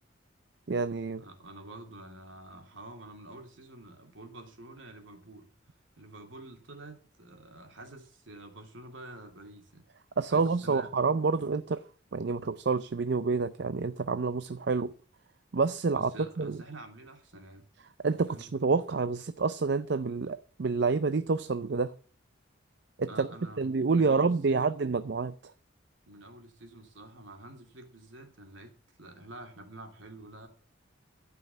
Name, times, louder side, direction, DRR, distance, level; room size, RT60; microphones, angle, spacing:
voice 1, 0.7-1.2 10.2-11.8 12.1-14.9 15.5-16.1 16.4-16.6 18.0-21.9 23.0-23.3 23.6-25.3, right 4 dB, 55° right, 0.5 m, -28 dB
voice 2, 1.2-5.5 6.0-9.9 10.3-10.9 15.9-17.7 18.3-18.5 23.1-24.9 26.1-30.5, right 2 dB, 70° right, 2.8 m, -48 dB
13.5 x 5.7 x 8.3 m
head